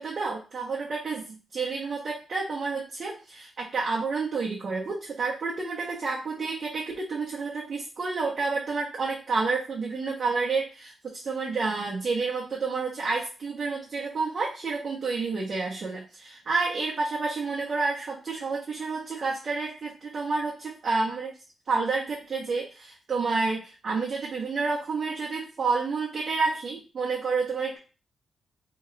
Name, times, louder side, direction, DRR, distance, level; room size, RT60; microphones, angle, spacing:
voice 1, 0.0-21.3 21.7-27.8, right 4 dB, 50° right, -4 dB, 1.0 m, -29 dB
3.0 x 2.8 x 4.1 m, 0.34 s
cardioid pair, 90°, 0 cm